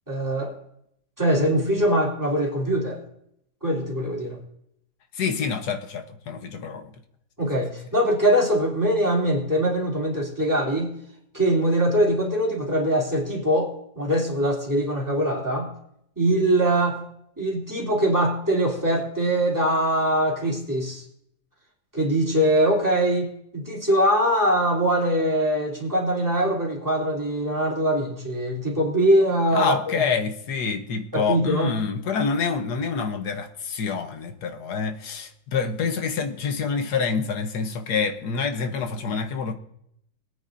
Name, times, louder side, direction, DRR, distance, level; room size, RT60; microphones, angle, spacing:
voice 1, 0.1-0.5 1.2-3.0 3.6-4.4 7.4-10.9 11.3-15.7 16.2-17.0 17.4-21.0 21.9-29.9 31.1-31.7, right 1 dB, 10° right, 3.1 m, -22 dB
voice 2, 5.1-7.0 29.5-39.5, left 5 dB, 65° left, 1.5 m, -27 dB
21.5 x 9.3 x 2.6 m
omnidirectional pair, 2.0 m